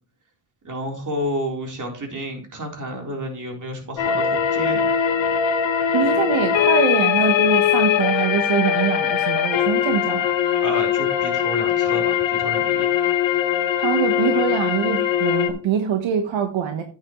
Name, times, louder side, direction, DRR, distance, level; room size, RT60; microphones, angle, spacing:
voice 1, 0.6-4.9 10.6-12.9, equal, 40° right, 2 dB, 3.7 m, -30 dB
sound 1, 4.0-15.5, left 9 dB, 75° left, 1.3 m, -21 dB
voice 2, 5.9-10.3 13.8-16.8, right 8 dB, 80° right, 6 dB, 1.3 m, -23 dB
10.0 x 8.8 x 3.0 m, 0.37 s
cardioid pair, 90°, 46 cm